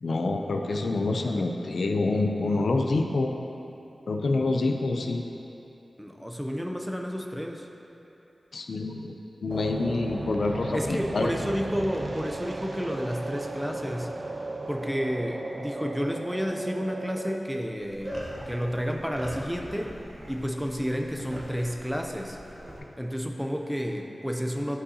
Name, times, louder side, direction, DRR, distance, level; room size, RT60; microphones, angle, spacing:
voice 1, 0.0-3.3 4.1-5.3 8.5-9.1 9.4-11.3, left 3 dB, 75° left, 3 dB, 0.4 m, -27 dB
voice 2, 6.0-7.7 10.7-14.1 14.7-18.2 18.5-19.9 20.3-22.4 23.0-24.8, equal, ahead, 2 dB, 0.5 m, -31 dB
sound 1, 9.5-17.4, right 2 dB, 50° right, 0.5 m, -36 dB
sound 2, 17.8-22.8, equal, 25° right, 1.2 m, -41 dB
11.0 x 5.4 x 2.8 m, 2.9 s
wide cardioid pair, 100°, 0 cm